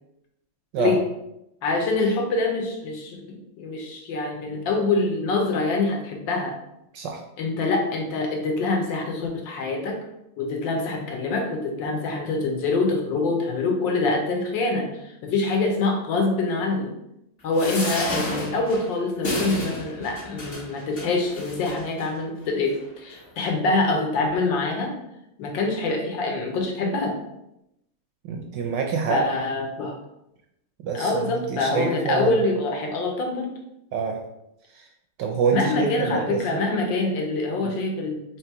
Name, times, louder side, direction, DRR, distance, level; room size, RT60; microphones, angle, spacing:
voice 1, 1.6-6.5 7.4-10.0 10.4-16.9 17.4-24.9 25.4-27.2 29.1-30.0 30.9-33.5 35.5-38.4, left 3 dB, 70° left, 2 dB, 1.4 m, -25 dB
sound 1, 17.5-22.1 22.7-22.8 23.1-23.2, left 1 dB, 40° left, 0.8 m, -31 dB
voice 2, 28.2-29.2 30.8-32.4 33.9-34.2 34.7-34.8 35.2-36.6 37.6-37.7, right 6 dB, 75° right, 2 dB, 1.1 m, -26 dB
3.7 x 3.0 x 4.5 m, 0.84 s
omnidirectional pair, 2.2 m